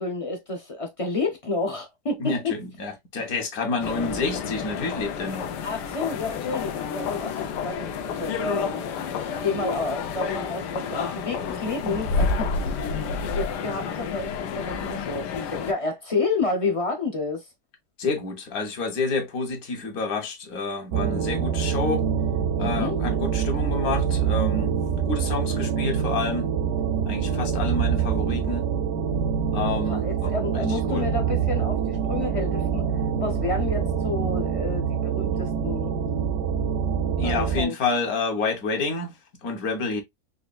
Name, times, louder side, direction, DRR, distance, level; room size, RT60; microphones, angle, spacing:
voice 1, 0.0-2.6 5.6-17.5 22.6-23.0 29.9-32.9 33.2-35.9 37.2-37.7, left 3 dB, 45° left, 0.4 m, -30 dB
voice 2, 2.2-5.5 18.0-22.0 22.6-24.7 25.1-26.5 27.1-28.6 29.5-31.1 37.2-40.0, left 3 dB, 65° left, 1.4 m, -29 dB
sound 1, 3.8-15.7, left 5 dB, 85° left, 1.3 m, -30 dB
sound 2, 20.9-37.6, right 7 dB, 65° right, 0.7 m, -25 dB
4.0 x 3.2 x 2.3 m
omnidirectional pair, 1.8 m